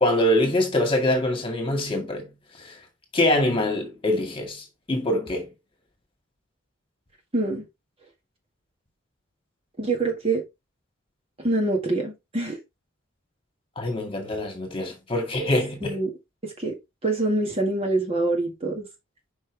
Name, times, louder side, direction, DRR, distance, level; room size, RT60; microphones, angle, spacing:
voice 1, 0.0-2.3 2.6-2.7 3.1-5.5 13.8-15.9, left 1 dB, 25° left, 2.0 m, -24 dB
voice 2, 7.3-7.6 9.8-10.4 11.4-12.6 15.8-16.1 16.4-16.8 17.0-18.8, right 2 dB, 30° right, 1.8 m, -25 dB
6.1 x 5.5 x 3.4 m
head